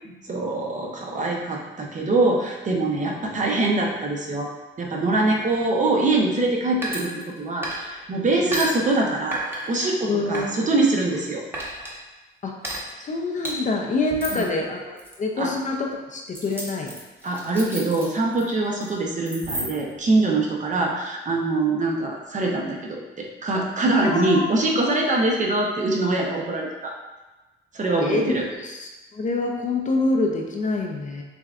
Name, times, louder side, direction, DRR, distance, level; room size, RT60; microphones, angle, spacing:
voice 1, 0.3-4.5 4.8-7.1 7.4-9.4 9.7-11.4 14.3-14.5 15.4-15.5 17.2-26.9 27.7-28.4, right 2 dB, 40° right, -1 dB, 0.9 m, -23 dB
sound 1, 6.8-8.0 8.5-8.7 9.3-9.9 10.3-11.2 11.5-11.9 12.6-12.8 13.4-13.5 14.1-14.5 15.0-15.1 16.3-18.4 18.7-18.9 19.3-19.9, right 1 dB, 10° right, 1.2 m, -32 dB
voice 2, 10.1-10.6 12.4-12.5 13.0-16.9 24.0-24.5 28.0-28.3 28.6-31.2, left 3 dB, 40° left, 1 dB, 0.6 m, -26 dB
6.9 x 2.3 x 2.5 m, 1.1 s
cardioid pair, 90°, 20 cm